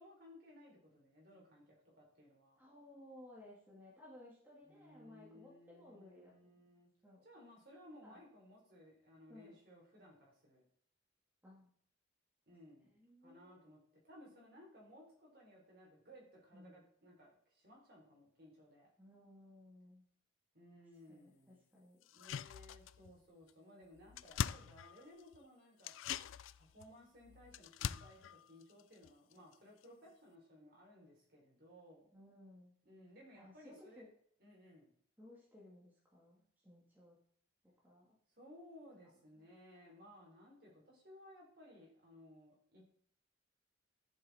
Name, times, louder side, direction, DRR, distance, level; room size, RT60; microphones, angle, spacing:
voice 1, 0.0-2.6 4.7-6.9 7.2-10.6 12.5-12.9 13.2-18.9 20.5-21.6 22.1-25.9 26.5-32.1 32.8-34.1 34.4-34.9 38.4-42.8, left 1 dB, 55° right, -2 dB, 4.2 m, -60 dB
voice 2, 2.6-6.6 7.0-7.2 8.0-8.2 9.3-9.6 11.4-11.7 12.9-13.6 16.5-16.8 19.0-20.1 21.1-22.0 32.1-32.7 33.3-34.1 35.2-37.2 37.8-38.2 39.3-39.5, left 1 dB, 10° right, -5 dB, 2.1 m, -59 dB
sound 1, 22.0-23.2 23.5-23.6 23.8-25.4 25.8-29.5 29.8-29.9, left 8 dB, 85° left, 0.3 m, -43 dB
12.5 x 7.4 x 4.3 m, 0.63 s
head